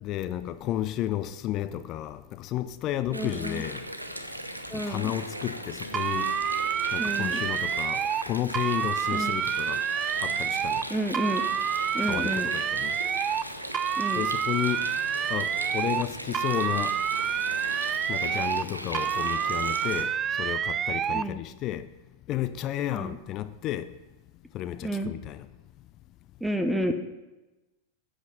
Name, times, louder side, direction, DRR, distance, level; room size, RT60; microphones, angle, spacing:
voice 1, 0.0-3.8 4.7-6.3 6.9-9.8 10.2-10.8 12.1-13.0 14.1-14.9 15.3-17.0 18.1-20.1 20.4-21.9 22.3-23.9 24.5-25.5, left 13 dB, 35° left, 0.4 m, -32 dB
voice 2, 3.1-3.6 4.7-5.1 7.0-7.4 9.1-9.4 10.9-11.4 11.9-12.5 14.0-14.3 21.1-21.4 22.9-23.2 24.8-25.1 26.4-26.9, right 1 dB, 5° right, 0.7 m, -30 dB
Water, 3.1-20.0, right 1 dB, 85° right, 0.8 m, -38 dB
sound 1, 5.9-8.3 8.5-10.9 11.1-13.5 13.7-16.1 16.3-18.7 18.9-21.3, right 8 dB, 25° right, 0.3 m, -28 dB
8.0 x 7.6 x 5.9 m
figure-of-eight pair, 90°, 0 cm